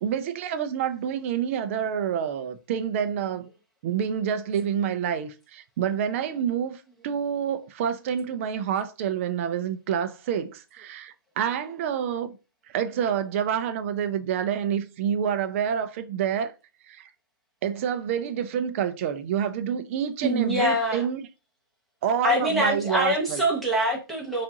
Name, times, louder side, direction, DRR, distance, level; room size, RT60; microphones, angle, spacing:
voice 1, 0.0-3.5 3.8-12.4 12.7-16.5 16.9-17.0 17.6-21.2 22.0-23.4, right 8 dB, 35° right, 0.4 m, -28 dB
voice 2, 20.2-21.1 22.2-24.4, equal, ahead, 0.9 m, -24 dB
4.4 x 2.5 x 2.8 m
figure-of-eight pair, 130°, 13 cm